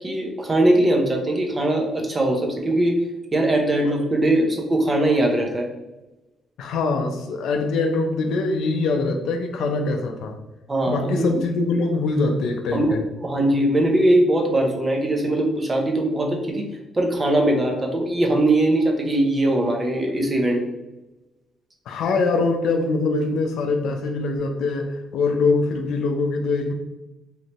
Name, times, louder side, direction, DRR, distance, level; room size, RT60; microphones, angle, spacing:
voice 1, 0.0-3.0 3.3-5.7 10.7-11.4 12.7-16.7 17.0-20.6, right 1 dB, 25° right, 1 dB, 0.7 m, -21 dB
voice 2, 6.6-10.4 10.9-13.0 21.9-26.7, left 3 dB, 80° left, 4 dB, 0.5 m, -23 dB
3.2 x 2.6 x 2.9 m, 1.0 s
cardioid pair, 90°, 0 cm